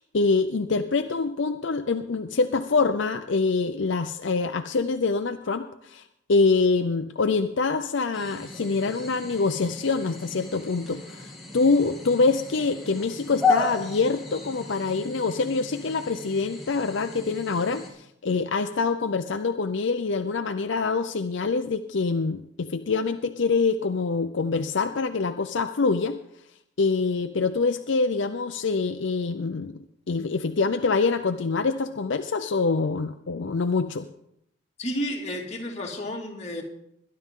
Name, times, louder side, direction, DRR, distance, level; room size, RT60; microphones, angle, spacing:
voice 1, 0.0-26.2 26.8-29.8 30.1-34.1, left 4 dB, 70° left, 7 dB, 0.6 m, -25 dB
sound 1, 8.1-17.9, left 4 dB, ahead, 2.9 m, -33 dB
voice 2, 34.8-36.6, equal, 35° left, -1 dB, 2.4 m, -31 dB
21.5 x 11.0 x 3.7 m, 0.76 s
head